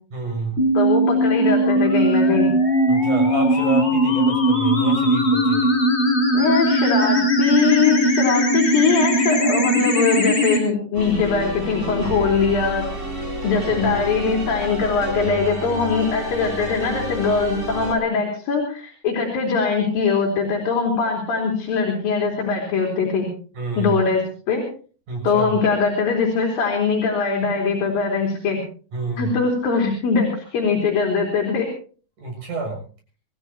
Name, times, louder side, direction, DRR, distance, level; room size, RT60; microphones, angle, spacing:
voice 1, 0.1-0.7 2.9-5.7 23.5-24.0 25.1-25.6 28.9-29.4 32.2-32.8, right 3 dB, 55° right, 2 dB, 8.3 m, -28 dB
sound 1, 0.6-10.6, equal, 20° left, 2.5 m, -19 dB
voice 2, 0.7-2.5 6.3-12.8 13.4-23.3 23.8-24.2 24.5-24.6 25.2-28.6 29.2-31.7, left 5 dB, 70° left, 1 dB, 4.9 m, -21 dB
sound 2, 10.9-17.9, right 1 dB, 20° right, 4.7 m, -30 dB
27.0 x 15.0 x 3.0 m, 0.40 s
omnidirectional pair, 4.2 m